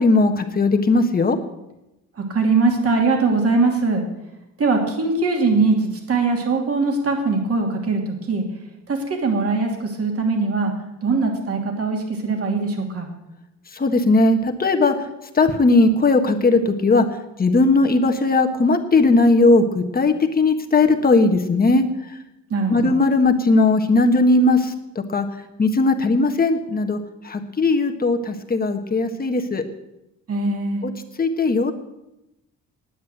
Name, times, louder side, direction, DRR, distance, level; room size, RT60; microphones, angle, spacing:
voice 1, 0.0-1.4 13.7-15.1 15.3-17.1 17.4-21.9 22.7-24.7 25.1-25.2 25.6-27.0 27.2-29.6 30.8-30.9 31.2-31.7, left 3 dB, 30° left, 5 dB, 1.4 m, -18 dB
voice 2, 2.2-4.0 4.6-8.4 8.9-10.7 11.0-13.1 22.5-22.9 30.3-30.8, right 3 dB, 50° right, 2 dB, 2.7 m, -21 dB
9.9 x 9.4 x 7.8 m, 0.93 s
cardioid pair, 90°, 30 cm